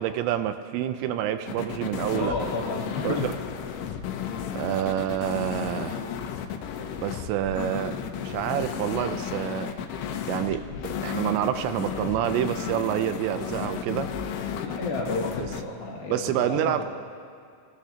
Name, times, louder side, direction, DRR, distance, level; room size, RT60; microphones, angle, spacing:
voice 1, 0.0-2.3 3.0-3.3 4.5-6.0 7.0-8.0 8.2-9.7 10.3-10.6 11.0-14.1 16.1-16.8, right 11 dB, 85° right, 9 dB, 2.8 m, -27 dB
sound 1, 1.5-15.6, left 8 dB, 85° left, 3.3 m, -33 dB
voice 2, 2.1-3.3 14.6-16.9, left 3 dB, 60° left, -4 dB, 3.9 m, -32 dB
26.0 x 19.5 x 2.9 m, 2.3 s
omnidirectional pair, 5.2 m